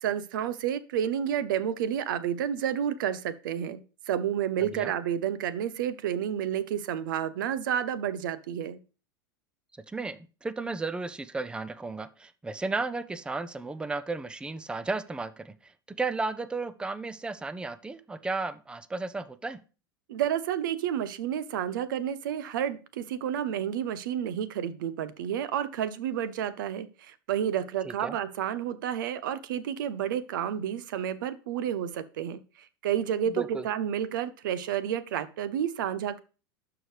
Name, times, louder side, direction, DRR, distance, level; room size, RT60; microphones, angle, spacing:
voice 1, 0.0-3.8 4.1-8.8 20.1-32.4 32.8-36.2, right 9 dB, 75° right, 16 dB, 0.7 m, -30 dB
voice 2, 4.6-4.9 9.9-15.7 16.0-19.6 27.8-28.2 33.3-33.7, right 3 dB, 10° right, 15 dB, 0.5 m, -34 dB
11.5 x 4.8 x 3.2 m, 0.35 s
hypercardioid pair, 90°, 11 cm